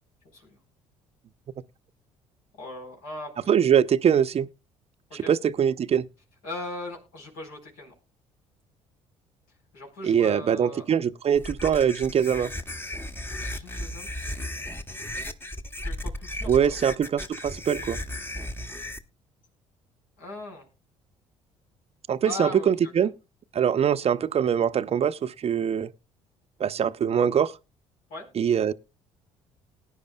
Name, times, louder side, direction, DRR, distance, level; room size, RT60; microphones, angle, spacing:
voice 1, 2.5-3.7 5.1-5.3 6.4-7.9 9.7-10.9 13.5-14.8 15.8-16.8 20.2-20.7 22.2-23.1 28.1-28.3, left 2 dB, 70° left, 4.2 m, -39 dB
voice 2, 3.5-4.5 5.1-6.1 10.0-12.5 16.5-18.0 22.1-23.1 23.5-25.9 26.6-27.5 28.4-28.7, right 8 dB, 40° right, 0.6 m, -23 dB
sound 1, 11.3-19.0, left 1 dB, 15° left, 1.1 m, -35 dB
19.5 x 9.9 x 2.2 m
hypercardioid pair, 55°, 16 cm